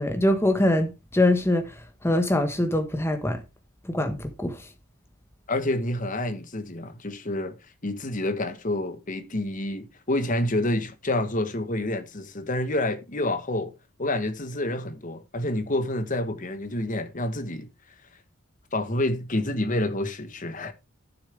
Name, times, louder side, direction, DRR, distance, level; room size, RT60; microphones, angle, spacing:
voice 1, 0.0-1.6 2.0-3.4 3.9-4.6, left 1 dB, 10° left, 1.2 m, -23 dB
voice 2, 5.5-7.6 7.8-13.7 14.0-17.7 18.7-20.7, left 1 dB, 35° left, 1.1 m, -28 dB
11.5 x 6.8 x 3.4 m
head